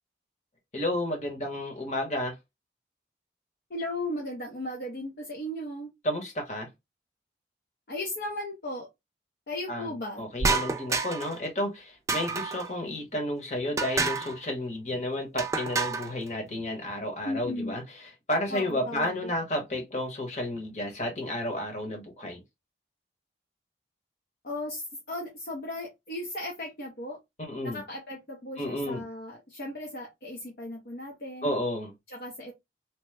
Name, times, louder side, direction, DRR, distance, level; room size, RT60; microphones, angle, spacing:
voice 1, 0.7-2.4 6.0-6.7 9.7-17.8 18.3-22.4 27.4-27.8 28.6-29.0 31.4-31.9, left 1 dB, 40° left, 1.1 m, -31 dB
voice 2, 3.7-5.9 7.9-8.9 9.5-10.2 17.2-17.7 18.5-19.3 24.4-27.2 27.6-31.5 32.1-32.5, left 1 dB, 55° left, 0.7 m, -36 dB
sound 1, 10.4-11.4 12.1-12.7 13.8-14.4 15.4-16.1, right 4 dB, 15° right, 0.3 m, -28 dB
3.0 x 2.1 x 3.2 m
head